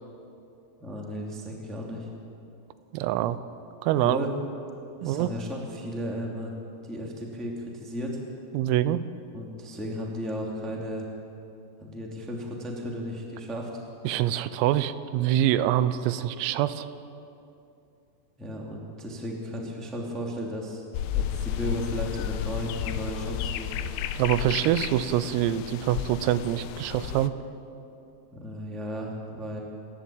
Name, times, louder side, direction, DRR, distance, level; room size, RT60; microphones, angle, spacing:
voice 1, 0.8-2.1 3.9-4.3 5.0-6.5 6.8-8.2 9.3-11.0 11.8-13.7 18.4-20.8 21.1-23.8 28.3-29.6, equal, ahead, -1 dB, 0.9 m, -34 dB
voice 2, 2.9-3.4 3.8-4.2 5.0-5.3 8.5-9.0 14.1-16.9 24.2-27.3, right 12 dB, 90° right, 13 dB, 3.4 m, -25 dB
sound 1, 20.9-27.3, left 9 dB, 80° left, 3.3 m, -32 dB
28.5 x 11.5 x 8.7 m, 2.7 s
omnidirectional pair, 6.0 m